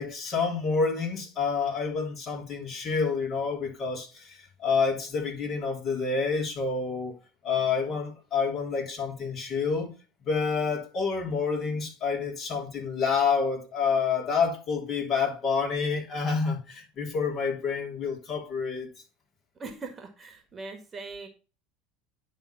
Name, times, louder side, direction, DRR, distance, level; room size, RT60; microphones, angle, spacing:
voice 1, 0.0-7.2 7.4-9.9 10.2-18.9, left 5 dB, 40° left, 3.1 m, -28 dB
voice 2, 19.6-21.3, right 3 dB, 25° right, 1.6 m, -40 dB
10.0 x 3.6 x 5.7 m
supercardioid pair, 115°, 0 cm